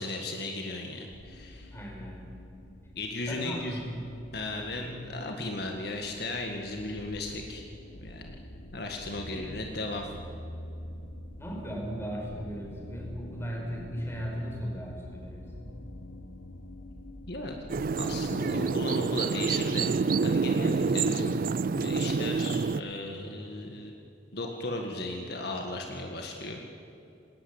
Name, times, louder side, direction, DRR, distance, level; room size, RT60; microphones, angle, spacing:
voice 1, 0.0-1.7 3.0-3.8 4.3-7.6 8.0-8.3 8.7-10.1 17.3-17.6 18.0-20.0 20.2-21.3 21.7-23.9 24.3-26.6, left 2 dB, 60° left, 2 dB, 1.9 m, -36 dB
sound 1, 1.1-18.2, left 1 dB, 85° left, 1.4 m, -46 dB
voice 2, 1.7-2.4 3.3-3.9 4.8-5.0 9.3-9.5 11.4-15.7, equal, 15° left, 0 dB, 5.1 m, -37 dB
sound 2, 17.7-22.8, right 4 dB, 50° right, 0.4 m, -27 dB
20.0 x 18.5 x 8.9 m, 2.7 s
head